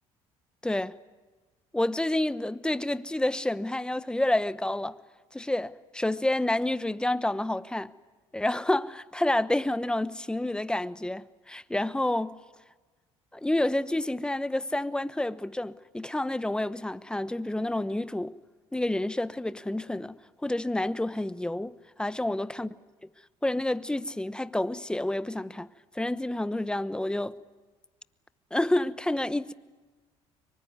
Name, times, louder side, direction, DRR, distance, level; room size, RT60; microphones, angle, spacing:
voice 1, 0.6-0.9 1.7-4.9 5.3-7.9 8.3-12.4 13.3-18.3 18.7-20.2 20.4-22.7 23.4-25.7 25.9-27.3 28.5-29.5, left 1 dB, 5° left, 1.0 m, -29 dB
25.0 x 23.5 x 9.5 m
supercardioid pair, 90°, 13 cm